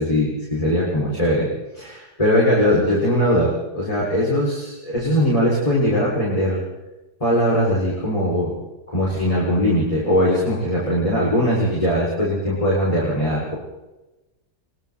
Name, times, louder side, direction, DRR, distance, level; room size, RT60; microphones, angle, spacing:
voice 1, 0.0-1.5 1.7-6.6 7.2-8.5 8.9-13.6, equal, 20° left, -6 dB, 6.7 m, -20 dB
26.0 x 24.0 x 4.4 m, 1.1 s
omnidirectional pair, 1.8 m